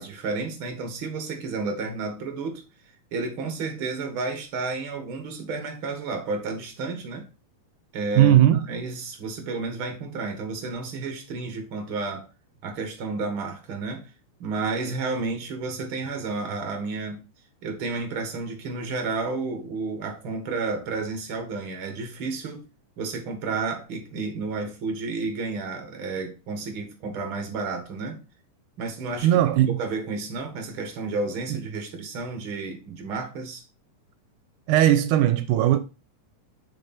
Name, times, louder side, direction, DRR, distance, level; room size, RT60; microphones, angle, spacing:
voice 1, 0.0-2.7 3.1-7.3 7.9-12.3 12.6-14.1 14.4-17.3 17.6-22.6 23.0-28.2 28.8-29.4 29.8-33.6, right 3 dB, 45° right, 2.3 m, -31 dB
voice 2, 8.2-8.6 29.2-29.8 31.5-31.6 34.7-35.8, right 12 dB, 85° right, 2.2 m, -18 dB
6.8 x 5.9 x 4.2 m
omnidirectional pair, 3.6 m